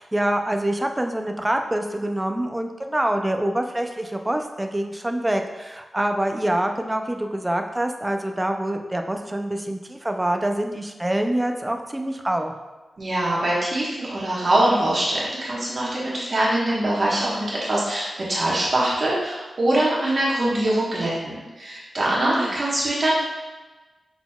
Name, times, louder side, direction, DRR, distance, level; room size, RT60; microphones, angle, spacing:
voice 1, 0.0-12.6 22.0-22.5, right 1 dB, 10° right, 4 dB, 0.3 m, -25 dB
voice 2, 13.0-23.1, right 1 dB, 40° right, -6 dB, 1.1 m, -23 dB
5.9 x 3.9 x 2.2 m, 1.2 s
wide cardioid pair, 165°, 0 cm